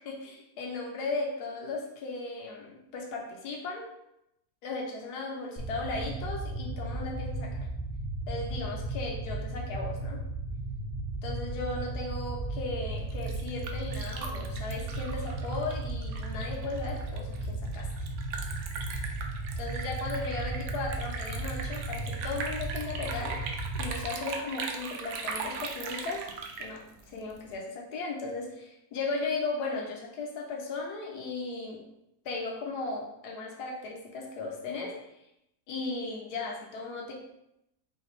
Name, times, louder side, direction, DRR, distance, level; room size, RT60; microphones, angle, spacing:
voice 1, 0.0-3.9 4.6-7.7 8.3-10.2 11.2-17.9 19.6-23.4 23.7-26.2 26.6-31.8 32.2-34.9 35.7-37.1, left 3 dB, 75° left, 0 dB, 1.4 m, -36 dB
sound 1, 5.6-24.0, right 2 dB, 45° left, 0.5 m, -35 dB
Liquid, 13.0-27.5, right 4 dB, 70° right, 1.0 m, -40 dB
5.0 x 2.8 x 3.1 m, 0.83 s
omnidirectional pair, 1.7 m